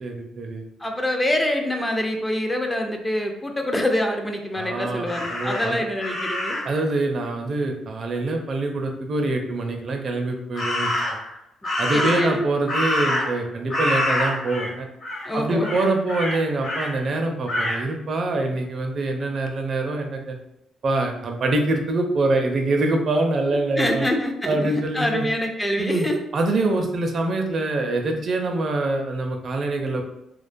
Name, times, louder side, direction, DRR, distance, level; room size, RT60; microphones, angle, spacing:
voice 1, 0.0-0.6 4.5-5.8 6.6-10.9 11.8-14.9 15.3-20.4 20.8-24.1 24.4-25.3 25.8-26.1 26.3-30.0, right 2 dB, 50° right, 3 dB, 0.4 m, -25 dB
voice 2, 0.8-6.6 11.9-12.5 15.3-15.7 23.8-26.2, left 1 dB, 15° left, 3 dB, 0.3 m, -25 dB
Crow, 5.0-6.8 10.5-11.3 11.6-13.4 13.7-14.7 15.0-15.3 15.6-16.9 17.5-17.8, left 1 dB, 50° left, 1.0 m, -26 dB
2.3 x 2.2 x 2.5 m, 0.83 s
cardioid pair, 90°, 0 cm